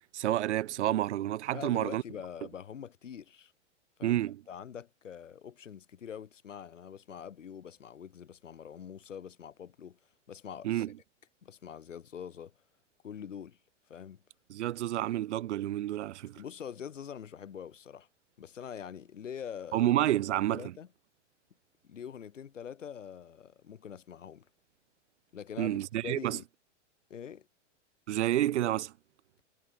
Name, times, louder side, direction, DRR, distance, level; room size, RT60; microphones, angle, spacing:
voice 1, 0.1-2.0 4.0-4.4 10.6-10.9 14.5-16.4 19.7-20.7 25.6-26.4 28.1-28.9, right 13 dB, 70° right, 2.3 m, -29 dB
voice 2, 1.5-3.5 4.0-4.2 4.5-10.0 10.3-10.9 11.4-12.5 13.0-13.6 13.9-14.2 16.3-18.1 18.4-19.9 20.5-20.9 21.8-24.5 25.3-25.8 26.0-26.4 27.1-27.5, left 8 dB, 85° left, 4.4 m, -44 dB
hypercardioid pair, 115°, 36 cm